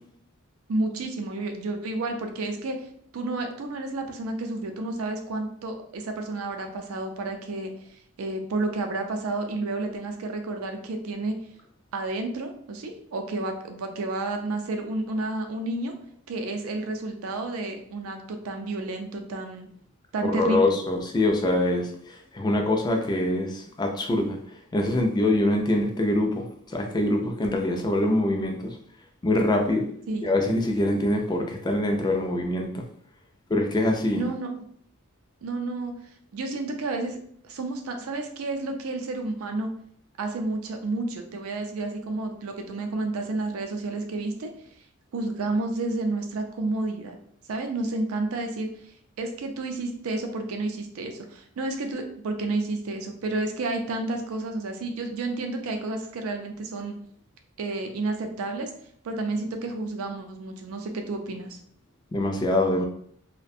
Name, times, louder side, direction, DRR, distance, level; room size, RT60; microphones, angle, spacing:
voice 1, 0.7-2.8 3.1-7.7 8.2-11.3 11.9-15.9 16.3-19.7 20.1-20.7 30.1-30.3 34.1-34.6 35.4-36.0 36.3-37.2 37.4-39.7 40.2-44.5 45.1-47.2 47.5-48.7 49.2-56.9 57.6-58.7 59.0-61.6, right 2 dB, 75° right, 4 dB, 0.4 m, -30 dB
voice 2, 20.2-21.9 22.3-24.4 24.7-28.8 29.2-29.8 30.2-32.8 33.5-34.2 62.1-62.8, left 1 dB, 20° left, 2 dB, 0.3 m, -24 dB
2.4 x 2.1 x 2.6 m, 0.63 s
head